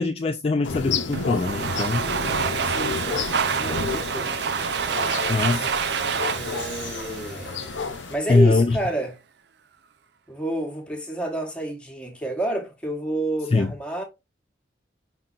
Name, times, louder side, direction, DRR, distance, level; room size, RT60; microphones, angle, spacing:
voice 1, 0.0-2.1 5.3-5.7 8.3-8.8 13.5-13.7, left 3 dB, 30° left, 0.3 m, -22 dB
sound 1, 0.6-8.2, left 5 dB, 80° left, 0.6 m, -31 dB
Domestic sounds home sounds, 1.1-8.0, right 6 dB, 60° right, 0.5 m, -27 dB
voice 2, 2.6-3.2 3.6-4.3 6.3-7.6 8.1-9.2 10.3-14.0, right 1 dB, 5° left, 1.1 m, -29 dB
5.4 x 3.8 x 2.4 m
head